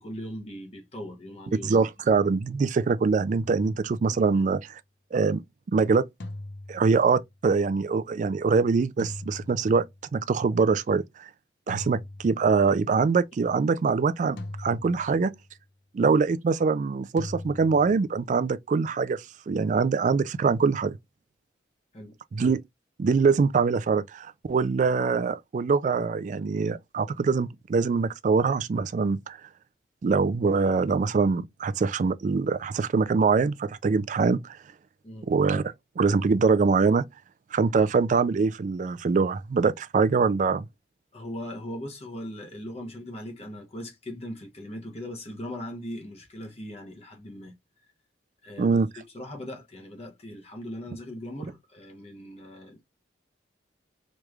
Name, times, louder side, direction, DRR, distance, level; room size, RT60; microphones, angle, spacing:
voice 1, 0.0-1.7 13.4-13.5 15.1-15.2 21.9-22.2 35.0-35.3 41.1-47.6 48.4-48.8 49.0-52.8, left 1 dB, 35° left, 0.9 m, -39 dB
voice 2, 1.6-4.8 5.1-5.4 5.7-6.1 6.7-9.8 10.1-11.3 11.7-15.3 15.9-21.0 22.3-22.6 23.0-29.4 30.0-34.6 35.2-35.6 36.0-37.1 37.5-40.7 48.6-48.9, right 4 dB, 45° right, 0.3 m, -24 dB
sound 1, 3.4-4.4 6.2-7.3 9.0-10.1 11.7-12.8 14.4-15.5 17.2-18.0, left 1 dB, 85° left, 0.7 m, -41 dB
3.3 x 3.1 x 2.3 m
head